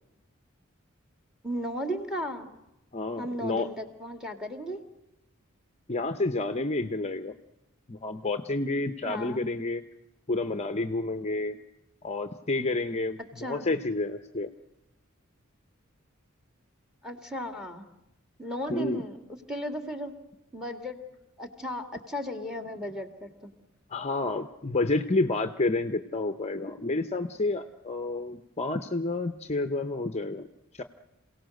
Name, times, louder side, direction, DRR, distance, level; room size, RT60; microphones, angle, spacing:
voice 1, 1.4-2.5 3.2-4.8 9.1-9.5 13.4-13.7 17.0-17.9 18.4-19.2 19.5-20.1 20.5-21.0 21.4-23.5, equal, 5° right, 6 dB, 2.1 m, -35 dB
voice 2, 2.9-3.7 5.9-7.4 7.9-9.8 10.3-11.6 12.0-14.5 18.7-19.0 23.9-30.5 30.7-30.8, left 2 dB, 30° left, 9 dB, 0.7 m, -29 dB
27.5 x 17.5 x 6.5 m, 0.90 s
head